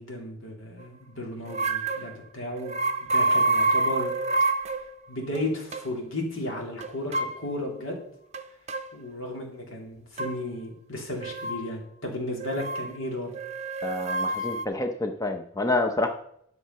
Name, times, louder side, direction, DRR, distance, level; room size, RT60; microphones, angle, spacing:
voice 1, 0.0-2.8 3.1-4.1 5.1-8.0 8.9-13.3, left 1 dB, 70° left, 1 dB, 2.9 m, -34 dB
sound 1, 1.5-2.1 2.6-4.9 5.4-5.5 5.7-5.9 6.8-7.4 8.3-8.9 10.2-10.3 11.2-11.6 12.4-12.9 13.3-14.7, right 2 dB, 35° right, 0.7 m, -27 dB
voice 2, 13.8-16.1, left 2 dB, 15° left, 5 dB, 0.7 m, -28 dB
10.5 x 6.7 x 5.7 m, 0.70 s
head